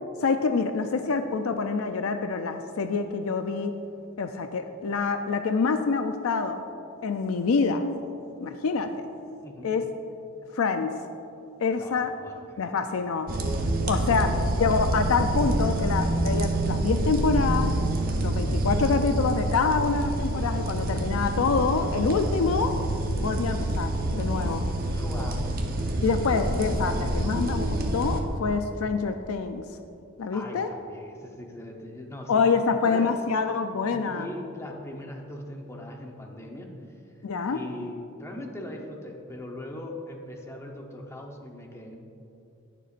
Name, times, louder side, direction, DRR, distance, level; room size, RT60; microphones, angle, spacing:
voice 1, 0.2-3.8 4.2-6.6 7.0-7.9 8.4-9.1 9.6-9.9 10.5-10.9 11.6-12.1 12.6-13.3 13.9-14.3 14.6-17.7 18.2-22.8 23.2-24.7 26.0-29.6 30.2-30.7 32.3-34.3 37.2-37.6, left 4 dB, 70° left, 7 dB, 0.4 m, -26 dB
voice 2, 9.4-9.7 11.8-12.6 13.9-14.5 20.8-21.2 24.9-25.5 30.3-32.5 32.8-33.2 33.8-36.7 37.5-42.0, left 1 dB, 15° left, 1 dB, 0.9 m, -40 dB
sound 1, 13.3-28.2, right 1 dB, 45° right, 0.9 m, -27 dB
19.0 x 6.9 x 2.5 m, 2.6 s
head